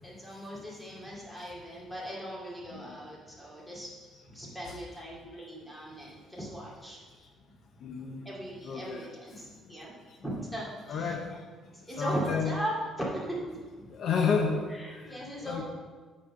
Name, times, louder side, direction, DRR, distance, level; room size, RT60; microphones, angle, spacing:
voice 1, 0.0-3.9 4.3-7.0 8.2-9.9 10.2-11.4 11.7-13.6 14.7-15.6, equal, 5° left, -4 dB, 2.3 m, -38 dB
voice 2, 7.8-8.2 8.6-9.1 10.2-10.3 10.9-11.4 12.0-12.6 13.9-14.6 15.4-15.6, left 5 dB, 55° left, 2 dB, 0.8 m, -30 dB
8.9 x 4.3 x 6.2 m, 1.4 s
cardioid pair, 130°, 0 cm